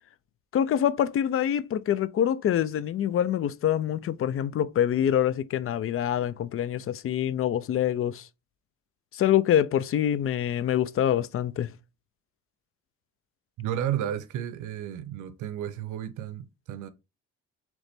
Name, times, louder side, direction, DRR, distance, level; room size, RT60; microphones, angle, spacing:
voice 1, 0.5-8.2 9.1-11.7, left 10 dB, 45° left, 0.4 m, -25 dB
voice 2, 13.6-16.9, right 10 dB, 80° right, 0.6 m, -32 dB
3.9 x 3.1 x 3.4 m
cardioid pair, 90°, 30 cm